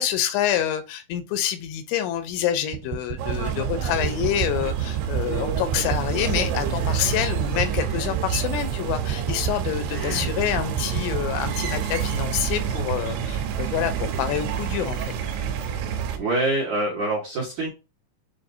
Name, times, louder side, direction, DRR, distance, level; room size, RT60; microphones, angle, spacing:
voice 1, 0.0-15.0, left 11 dB, 85° left, 2.8 m, -27 dB
sound 1, 2.7-11.3, right 8 dB, 35° right, 1.6 m, -29 dB
sound 2, 3.2-16.2, right 8 dB, 85° right, 2.8 m, -28 dB
voice 2, 9.9-10.4 16.2-17.7, right 2 dB, 65° right, 1.9 m, -26 dB
7.2 x 2.6 x 2.6 m
omnidirectional pair, 5.3 m